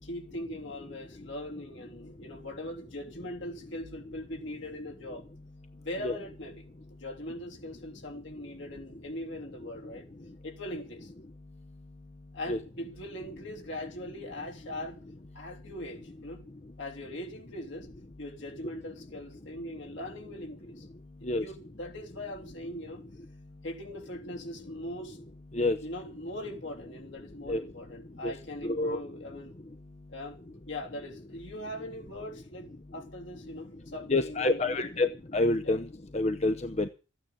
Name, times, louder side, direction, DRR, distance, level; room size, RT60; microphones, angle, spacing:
voice 1, 0.0-5.2 5.7-6.6 7.0-10.1 10.4-11.1 12.3-15.0 15.3-16.4 16.8-17.9 18.2-20.9 21.3-23.0 23.6-25.2 25.8-29.5 30.1-30.4 30.7-35.0 35.6-35.8, left 1 dB, 65° left, 3.2 m, -41 dB
voice 2, 28.6-29.0 34.1-35.9 36.1-36.9, left 2 dB, 30° left, 0.7 m, -27 dB
14.5 x 9.4 x 8.4 m
head